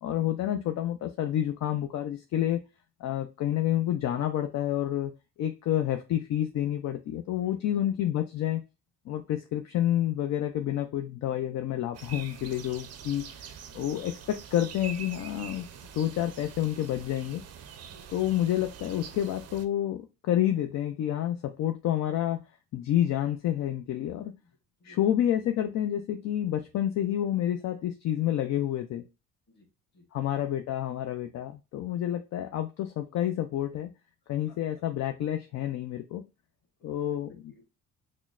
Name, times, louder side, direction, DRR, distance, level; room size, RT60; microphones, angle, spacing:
voice 1, 0.0-2.6 3.0-5.1 5.4-8.6 9.1-15.7 15.9-17.4 18.1-22.4 22.7-24.3 24.8-29.0 30.1-33.9 34.3-36.2 36.8-37.3, left 11 dB, 60° left, 6 dB, 0.4 m, -29 dB
voice 2, 7.4-8.0 17.8-18.1 24.4-25.0 29.5-29.7 29.9-30.1 34.2-34.6 36.8-37.6, left 1 dB, 35° left, 0 dB, 1.4 m, -59 dB
sound 1, 11.9-19.7, right 7 dB, 50° right, 0.5 m, -45 dB
6.0 x 2.1 x 2.3 m, 0.28 s
cardioid pair, 170°, 32 cm